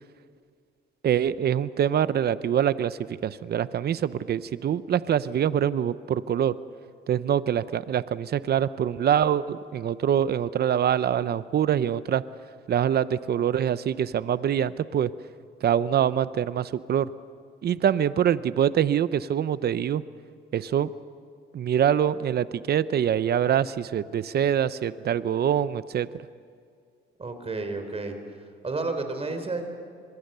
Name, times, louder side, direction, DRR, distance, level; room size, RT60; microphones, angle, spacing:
voice 1, 1.0-6.5 7.1-12.2 12.7-15.1 15.6-17.1 17.6-20.0 20.5-20.9 21.5-26.3, right 9 dB, 55° right, 15 dB, 0.7 m, -24 dB
voice 2, 27.2-28.2 28.6-29.6, right 3 dB, 30° right, 7 dB, 3.8 m, -31 dB
25.5 x 22.0 x 6.8 m, 2.2 s
cardioid pair, 90°, 20 cm